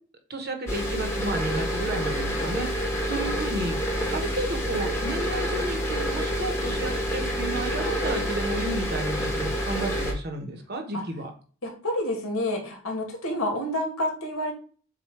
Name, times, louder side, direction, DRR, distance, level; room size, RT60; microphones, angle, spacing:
voice 1, 0.3-3.8 4.1-11.3, right 1 dB, 45° right, 5 dB, 1.1 m, -32 dB
sound 1, 0.7-10.1, equal, 10° left, 1.3 m, -28 dB
voice 2, 11.6-14.5, left 1 dB, 80° left, 2 dB, 2.0 m, -29 dB
7.6 x 2.6 x 4.8 m, 0.42 s
head